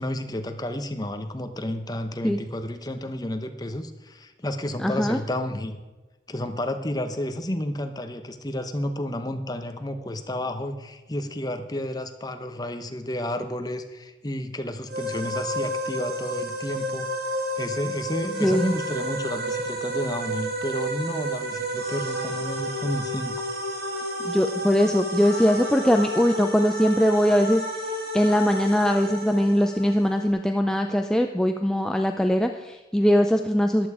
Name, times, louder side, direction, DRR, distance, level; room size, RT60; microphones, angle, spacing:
voice 1, 0.0-5.8 6.3-17.1 17.6-23.4, left 1 dB, 20° left, 7 dB, 0.9 m, -31 dB
voice 2, 4.8-5.2 18.4-18.7 24.2-27.6 28.1-33.9, equal, 5° left, 4 dB, 0.4 m, -21 dB
sound 1, 14.9-30.3, equal, 60° right, 2.5 m, -31 dB
14.0 x 11.0 x 4.9 m, 1.1 s
head